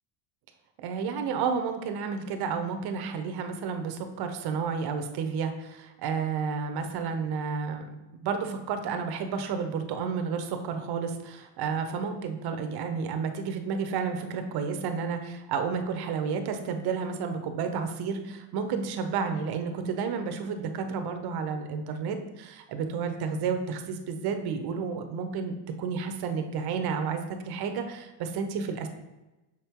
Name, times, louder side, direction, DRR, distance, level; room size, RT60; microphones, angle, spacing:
voice 1, 0.8-28.9, right 5 dB, 50° right, 6 dB, 0.9 m, -31 dB
6.2 x 4.5 x 3.6 m, 1.0 s
cardioid pair, 120°, 49 cm